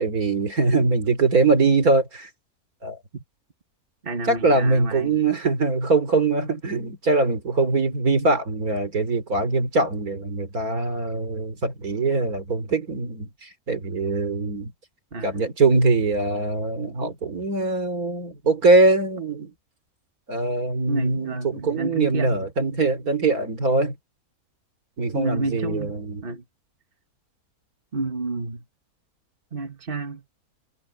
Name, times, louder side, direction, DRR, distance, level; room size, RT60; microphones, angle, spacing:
voice 1, 0.0-2.3 2.8-3.0 4.3-14.7 15.2-19.5 20.3-24.0 25.0-26.2, right 3 dB, 70° right, 3.7 m, -22 dB
voice 2, 4.0-5.2 15.1-15.4 20.9-22.5 25.1-25.9 26.2-26.4 27.9-28.6 29.5-30.2, right 2 dB, 35° right, 2.2 m, -30 dB
omnidirectional pair, 1.6 m